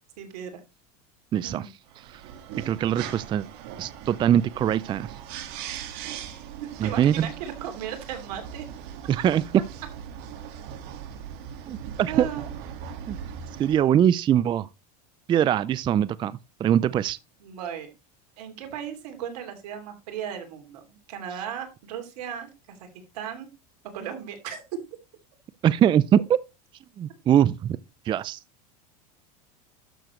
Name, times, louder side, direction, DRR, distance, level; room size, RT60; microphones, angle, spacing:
voice 1, 0.2-0.6 1.4-1.7 5.7-5.8 6.6-8.6 12.1-12.5 17.4-17.9 18.4-22.9 23.1-23.5 23.9-24.6, right 9 dB, 80° right, 2.9 m, -36 dB
voice 2, 1.3-1.6 2.6-3.5 3.8-5.1 6.8-7.3 9.1-9.4 11.7-12.3 13.1-13.2 13.6-14.7 15.3-16.3 16.6-17.2 25.6-26.4 27.0-27.8 28.1-28.4, right 10 dB, 25° right, 0.4 m, -22 dB
sound 1, 1.9-13.8, right 8 dB, 60° right, 1.8 m, -39 dB
12.0 x 6.8 x 3.1 m
supercardioid pair, 125°, 20 cm